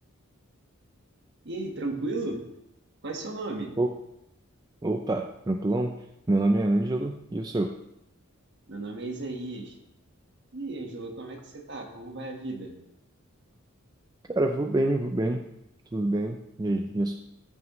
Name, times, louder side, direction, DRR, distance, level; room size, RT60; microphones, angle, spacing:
voice 1, 1.4-2.4 3.0-3.7 8.7-9.7 10.5-12.7, right 2 dB, 55° right, 2 dB, 1.5 m, -35 dB
voice 2, 4.8-6.0 6.3-7.7 14.4-15.4 15.9-17.1, right 2 dB, 20° right, 4 dB, 0.4 m, -26 dB
14.0 x 6.2 x 3.1 m, 0.84 s
head